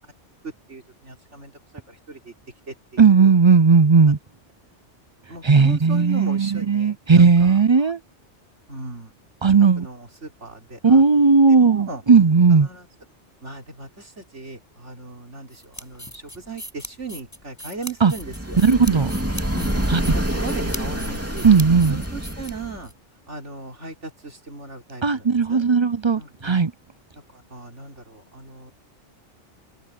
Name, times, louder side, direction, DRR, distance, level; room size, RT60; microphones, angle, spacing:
voice 1, 0.7-1.5 1.9-2.3 2.7-3.3 5.3-7.6 8.7-9.1 9.8-11.0 11.5-12.0 12.5-12.9 13.4-18.6 19.5-21.5 21.9-22.9 23.3-25.6 26.2-26.6 27.3-28.7, right 3 dB, 85° right, 4.7 m, -38 dB
voice 2, 3.0-4.2 5.4-8.0 9.4-9.9 10.8-12.7 18.0-18.1 18.6-19.1 19.9-20.2 21.4-22.0 25.0-26.7, right 5 dB, 35° right, 0.4 m, -16 dB
sound 1, 15.5-22.9, left 1 dB, 15° left, 6.9 m, -39 dB
sound 2, 18.1-22.9, right 1 dB, 10° right, 2.7 m, -27 dB
open air
omnidirectional pair, 1.2 m